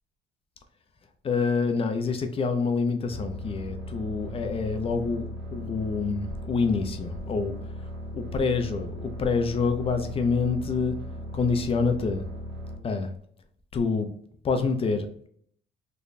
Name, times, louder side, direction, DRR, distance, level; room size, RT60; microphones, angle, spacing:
voice 1, 1.2-7.6 8.1-10.9 11.3-12.2 12.8-13.1 13.7-14.1 14.4-15.1, left 4 dB, 30° left, 6 dB, 0.5 m, -27 dB
sound 1, 3.1-12.8, equal, 70° right, 1.0 m, -37 dB
3.2 x 2.2 x 3.9 m, 0.65 s
cardioid pair, 120°, 18 cm